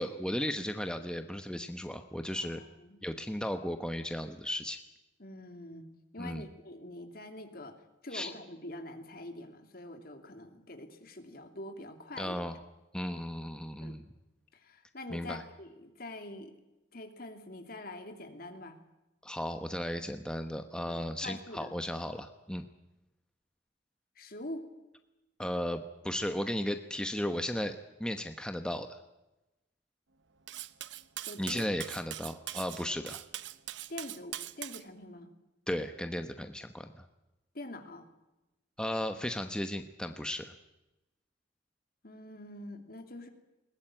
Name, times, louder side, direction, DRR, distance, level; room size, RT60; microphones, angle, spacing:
voice 1, 0.0-2.6 3.0-4.8 6.2-6.5 8.1-8.3 12.2-12.5 12.9-14.0 15.1-15.4 19.2-22.7 25.4-29.0 31.4-33.2 35.7-37.0 38.8-40.5, equal, 5° left, 7 dB, 1.0 m, -35 dB
voice 2, 2.3-3.0 5.2-5.9 6.1-7.8 8.0-12.4 13.8-14.0 14.5-16.5 16.9-18.8 20.9-21.7 24.2-24.7 31.2-31.7 33.9-35.3 37.5-38.1 42.0-43.3, left 1 dB, 55° left, 6 dB, 2.9 m, -45 dB
Cutlery silverware, 30.5-34.8, right 13 dB, 80° right, 0.8 m, -42 dB
21.5 x 19.5 x 9.0 m, 1.0 s
head